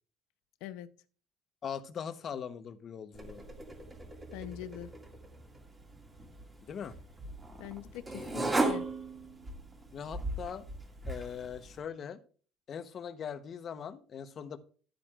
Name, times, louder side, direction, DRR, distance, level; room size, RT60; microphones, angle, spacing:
voice 1, 1.6-3.5 6.6-7.0 9.9-10.6 11.1-12.2 12.7-14.6, left 7 dB, 40° left, 0.9 m, -41 dB
sound 1, 3.1-11.8, right 2 dB, 15° right, 2.1 m, -38 dB
voice 2, 4.3-4.9 7.6-8.9, left 12 dB, 85° left, 0.7 m, -42 dB
12.0 x 8.8 x 2.4 m
cardioid pair, 140°, 0 cm